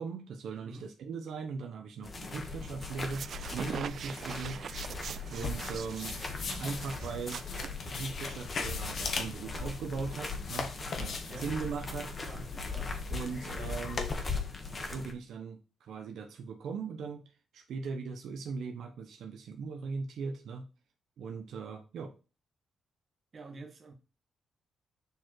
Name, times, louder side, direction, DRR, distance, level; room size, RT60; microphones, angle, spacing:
voice 1, 0.0-4.6 5.3-6.2 6.4-7.4 7.9-10.7 11.0-12.2 13.1-14.1 14.9-17.2 17.5-20.7 21.2-22.1, right 5 dB, 75° right, 1.0 m, -39 dB
sound 1, 2.0-15.1, left 3 dB, 30° left, 1.5 m, -40 dB
sound 2, 3.0-8.3, right 7 dB, 55° right, 0.4 m, -43 dB
sound 3, 5.3-14.1, left 4 dB, 50° left, 1.5 m, -40 dB
voice 2, 12.2-12.9 23.3-23.9, right 2 dB, 40° right, 1.7 m, -47 dB
7.1 x 4.7 x 4.6 m
cardioid pair, 130°, 0 cm